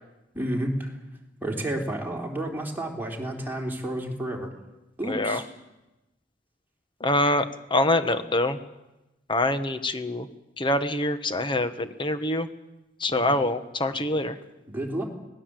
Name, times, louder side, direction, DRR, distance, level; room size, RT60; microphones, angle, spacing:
voice 1, 0.3-0.9 1.4-4.5 5.0-5.5 13.1-13.4 13.9-14.3 14.7-15.0, right 1 dB, 10° right, 1 dB, 3.5 m, -31 dB
voice 2, 5.0-5.4 7.0-8.6 9.3-10.3 10.6-12.5 13.0-14.3, left 1 dB, 25° left, 9 dB, 1.3 m, -25 dB
25.5 x 18.5 x 7.8 m, 0.99 s
head